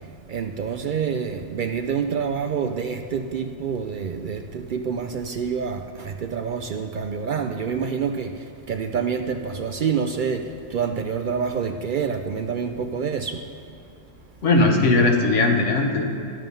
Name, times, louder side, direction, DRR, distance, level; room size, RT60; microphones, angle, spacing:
voice 1, 0.3-13.4, right 6 dB, 60° right, 6 dB, 0.5 m, -27 dB
voice 2, 14.4-16.0, left 2 dB, 90° left, 2 dB, 1.4 m, -18 dB
11.5 x 7.5 x 5.3 m, 2.7 s
omnidirectional pair, 1.2 m